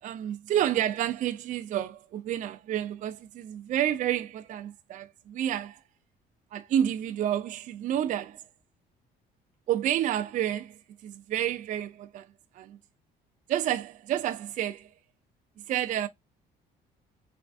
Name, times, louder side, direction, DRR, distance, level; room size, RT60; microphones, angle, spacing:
voice 1, 0.0-5.8 6.5-8.4 9.7-12.3 12.5-12.8 13.5-14.9 15.7-16.1, right 11 dB, 50° right, 0.4 m, -30 dB
3.4 x 3.3 x 2.4 m
cardioid pair, 110°, 17 cm